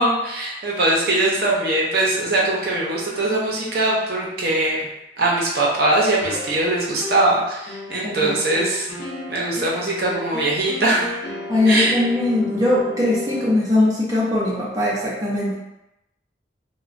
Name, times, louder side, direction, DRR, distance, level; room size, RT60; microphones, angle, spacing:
voice 1, 0.0-4.8 5.2-8.9 9.3-11.1 11.7-12.0, right 2 dB, 55° right, -4 dB, 0.6 m, -21 dB
sound 1, 6.2-7.4 7.7-13.5, left 2 dB, 55° left, 0.5 m, -33 dB
voice 2, 8.0-8.3 11.5-15.5, left 2 dB, 20° right, -7 dB, 0.5 m, -20 dB
3.0 x 2.1 x 2.5 m, 0.90 s
head